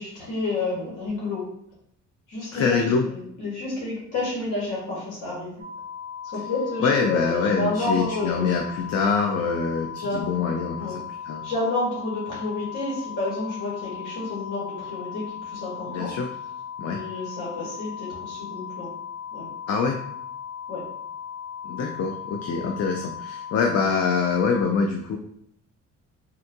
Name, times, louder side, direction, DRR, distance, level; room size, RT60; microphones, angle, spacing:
voice 1, 0.0-1.4 2.3-2.6 3.0-5.6 6.2-8.5 10.0-10.5 10.8-11.0 11.4-16.1 16.8-18.9 19.3-19.5 20.7-20.8, left 2 dB, 70° left, -6 dB, 1.4 m, -30 dB
voice 2, 2.5-3.0 6.8-11.4 15.9-16.3 16.8-17.0 19.7-20.0 21.6-25.2, left 5 dB, 55° left, 3 dB, 0.5 m, -25 dB
sound 1, 5.6-24.6, left 8 dB, 30° right, 0.9 m, -37 dB
3.7 x 2.2 x 2.7 m, 0.72 s
cardioid pair, 90°, 32 cm